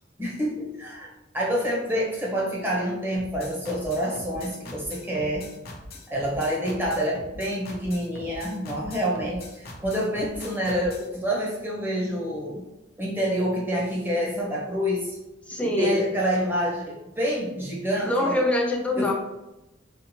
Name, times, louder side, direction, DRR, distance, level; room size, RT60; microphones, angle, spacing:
voice 1, 0.2-1.1 1.3-5.4 6.1-12.6 13.0-15.2 15.6-18.3 19.0-19.1, equal, 10° right, -5 dB, 0.9 m, -27 dB
sound 1, 3.2-11.1, left 2 dB, 55° left, 0.6 m, -43 dB
voice 2, 15.5-16.0 18.0-19.1, left 1 dB, 5° left, -1 dB, 0.5 m, -24 dB
4.3 x 2.4 x 2.8 m, 0.96 s
head